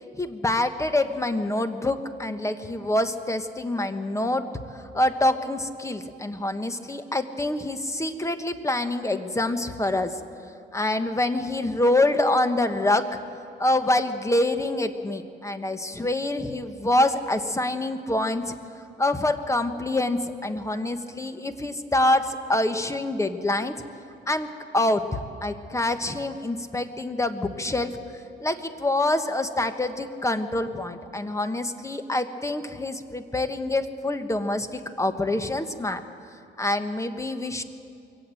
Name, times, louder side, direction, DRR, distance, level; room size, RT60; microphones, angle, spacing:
voice 1, 0.1-4.5 4.9-10.2 10.7-13.2 13.6-18.5 19.0-23.8 24.3-27.9 28.4-36.0 36.6-37.6, left 1 dB, 15° left, 9 dB, 1.3 m, -26 dB
23.0 x 17.5 x 7.8 m, 2.5 s
cardioid pair, 90°, 20 cm